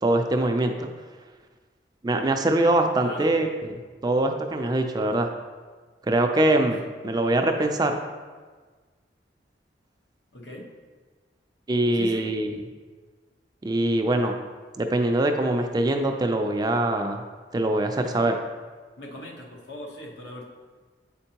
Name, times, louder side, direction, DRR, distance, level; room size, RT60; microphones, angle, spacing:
voice 1, 0.0-0.9 2.0-3.5 4.0-5.3 6.1-8.0 11.7-12.5 13.6-14.4 14.8-17.2 17.5-18.3, right 1 dB, 20° right, 5 dB, 0.4 m, -23 dB
voice 2, 3.0-3.4 10.3-10.7 11.9-12.3 18.0-18.3 19.0-20.5, left 1 dB, 70° left, 0 dB, 1.1 m, -39 dB
8.4 x 4.4 x 2.9 m, 1.4 s
head